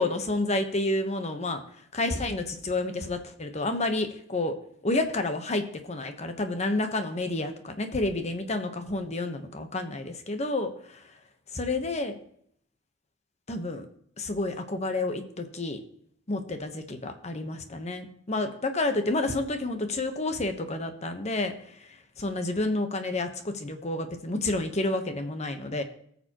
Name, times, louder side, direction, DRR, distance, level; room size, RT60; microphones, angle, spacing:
voice 1, 0.0-1.6 1.9-4.6 4.8-10.7 11.5-12.2 13.5-13.9 14.2-15.8 16.3-21.9 22.2-25.8, left 2 dB, 35° left, 7 dB, 1.0 m, -30 dB
18.5 x 6.9 x 3.0 m, 0.66 s
head